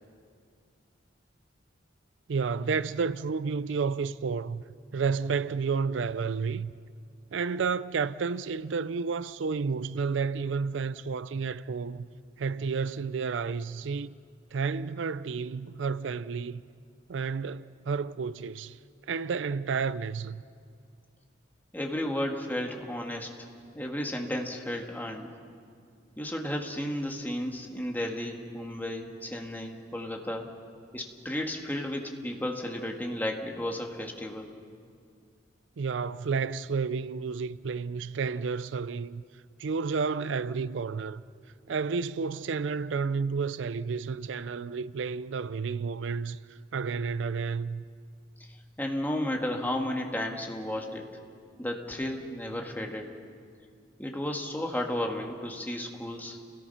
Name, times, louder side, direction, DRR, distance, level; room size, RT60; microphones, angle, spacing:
voice 1, 2.3-4.6 4.9-6.7 7.3-12.1 12.4-14.1 14.5-16.6 17.1-18.8 19.1-20.4 35.8-39.2 39.6-41.2 41.7-46.4 46.7-47.8, right 5 dB, 75° right, 0.4 m, -31 dB
voice 2, 21.7-23.5 23.8-25.3 26.2-30.5 30.9-34.5 48.8-51.1 51.6-53.2 54.0-56.4, left 1 dB, 10° left, 1.9 m, -33 dB
30.0 x 18.0 x 5.8 m
head